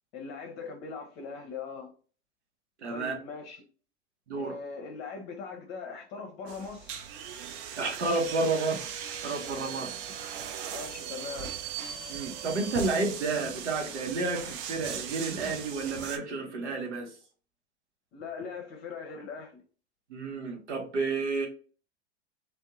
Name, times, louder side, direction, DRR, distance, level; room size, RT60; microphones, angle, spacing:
voice 1, 0.1-1.9 2.9-3.6 4.4-7.1 10.7-11.5 18.1-19.6, left 5 dB, 45° left, 0.6 m, -40 dB
voice 2, 2.8-3.1 4.3-4.6 7.8-10.1 12.1-17.1 20.1-21.5, right 3 dB, 80° right, 0.8 m, -31 dB
sound 1, 6.5-16.2, right 8 dB, 50° right, 0.4 m, -39 dB
2.6 x 2.2 x 2.3 m
figure-of-eight pair, 90°, 34 cm